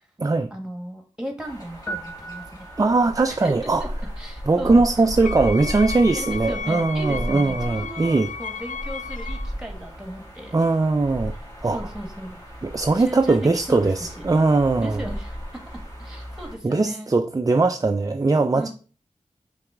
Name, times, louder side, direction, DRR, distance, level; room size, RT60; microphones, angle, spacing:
voice 1, 0.5-2.7 3.3-3.9 4.2-4.8 6.1-10.6 11.7-12.4 12.9-14.2 14.8-15.4 16.0-17.1 18.5-18.7, right 1 dB, 5° right, 1.7 m, -36 dB
sound 1, 1.4-16.6, equal, 30° left, 2.8 m, -36 dB
sound 2, 1.9-3.3, right 2 dB, 15° left, 1.4 m, -37 dB
voice 2, 2.8-3.8 4.5-8.3 10.5-11.3 11.6-11.8 12.6-15.0 16.6-18.7, right 3 dB, 30° right, 0.4 m, -20 dB
Wind instrument woodwind instrument, 5.2-9.5, left 6 dB, 80° left, 0.4 m, -34 dB
5.7 x 4.1 x 4.9 m
wide cardioid pair, 65°, 13 cm